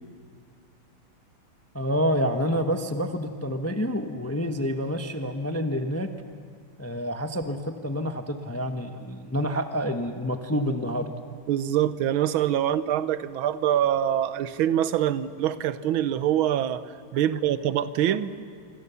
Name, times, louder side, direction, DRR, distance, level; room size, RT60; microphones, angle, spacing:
voice 1, 1.7-6.1 6.8-11.1, equal, 20° left, 7 dB, 0.4 m, -28 dB
voice 2, 11.5-16.8 17.1-18.3, right 11 dB, 75° right, 14 dB, 1.6 m, -24 dB
26.5 x 24.5 x 7.0 m, 2.2 s
omnidirectional pair, 2.3 m